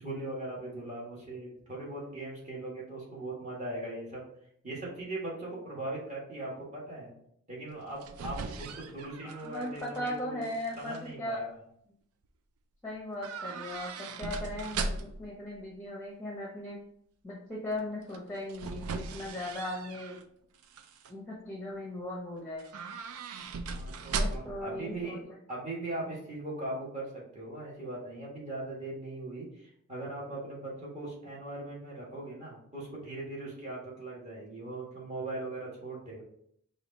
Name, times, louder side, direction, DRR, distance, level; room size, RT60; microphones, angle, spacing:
voice 1, 0.0-4.2 4.6-7.1 7.5-11.5 23.6-25.2 25.5-36.2, right 2 dB, 35° right, -5 dB, 1.7 m, -39 dB
sound 1, 7.7-10.1 10.4-11.0 13.2-15.3 18.1-20.2 20.6-21.1 22.6-24.7 24.9-25.0, right 3 dB, 85° right, 0.4 m, -38 dB
voice 2, 9.4-11.5 12.8-16.8 17.2-20.2 21.1-22.7 24.1-25.2, left 1 dB, 10° left, -4 dB, 0.7 m, -38 dB
4.8 x 2.6 x 4.0 m, 0.70 s
head